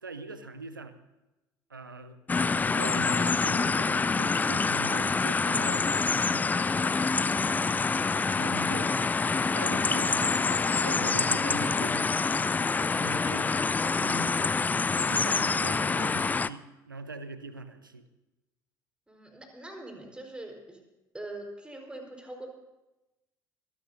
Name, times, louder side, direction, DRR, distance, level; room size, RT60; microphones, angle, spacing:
voice 1, 0.0-0.9 1.7-2.2 2.6-6.7 8.0-8.9 9.5-10.3 10.8-12.1 12.9-13.5 14.0-14.3 15.1-18.1, right 4 dB, 85° right, 12 dB, 0.9 m, -42 dB
sound 1, 2.3-16.5, left 4 dB, 15° left, 0.4 m, -26 dB
voice 2, 19.1-20.8 21.1-22.5, right 1 dB, 10° right, 2 dB, 4.4 m, -43 dB
24.5 x 18.0 x 2.7 m, 1.0 s
figure-of-eight pair, 60°, 11 cm